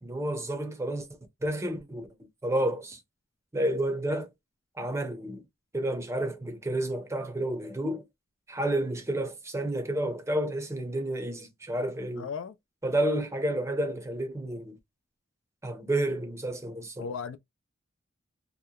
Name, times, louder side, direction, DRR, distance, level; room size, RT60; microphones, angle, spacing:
voice 1, 0.0-2.1 2.4-3.0 3.5-4.3 4.8-5.4 5.7-8.0 8.5-12.3 12.8-14.8 15.6-17.1, right 1 dB, 15° right, 0.6 m, -30 dB
voice 2, 12.1-12.6 17.0-17.4, left 5 dB, 70° left, 0.4 m, -36 dB
2.8 x 2.1 x 2.3 m
head